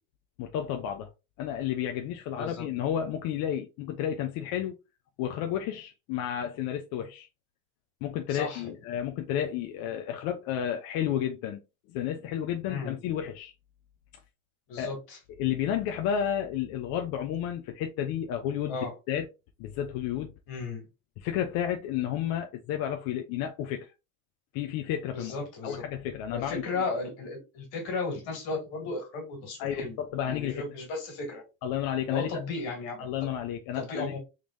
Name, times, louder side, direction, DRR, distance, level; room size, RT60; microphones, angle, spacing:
voice 1, 0.4-1.1 1.4-4.7 5.2-7.3 8.0-11.6 11.9-13.5 14.8-14.9 15.4-18.8 19.1-19.3 19.6-20.3 21.2-23.9 24.5-25.4 25.6-26.8 29.6-30.6 31.6-32.4 33.0-34.1, left 10 dB, 60° left, 0.6 m, -31 dB
voice 2, 8.3-8.7 12.7-13.0 14.7-15.2 18.7-18.9 20.5-20.9 25.1-25.8 26.3-30.0 30.2-31.4 32.1-33.1 33.7-34.2, left 3 dB, 75° left, 2.3 m, -35 dB
3.7 x 3.2 x 2.5 m
cardioid pair, 140°, 41 cm